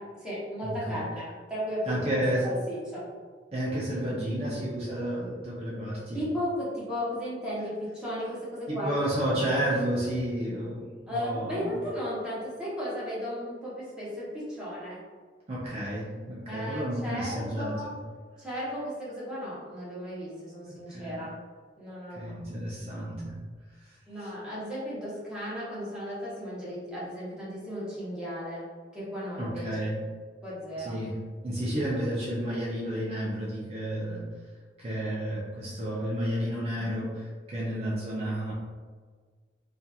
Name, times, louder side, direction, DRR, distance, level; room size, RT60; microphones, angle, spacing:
voice 1, 0.0-2.1 2.4-3.0 6.1-9.0 11.1-15.0 16.5-17.9 18.4-21.3 21.8-22.4 24.1-28.7 28.9-29.7 30.4-30.9 31.8-31.9 36.8-37.0, equal, 5° right, -9 dB, 0.8 m, -35 dB
voice 2, 0.6-1.1 1.9-2.5 3.5-6.2 8.7-11.8 15.5-17.9 20.6-21.2 22.1-23.4 24.2-24.3 29.4-30.0 30.8-31.2 31.4-34.2 34.8-37.1 37.5-38.5, right 1 dB, 35° right, -8 dB, 0.5 m, -31 dB
2.7 x 2.4 x 2.3 m, 1.5 s
head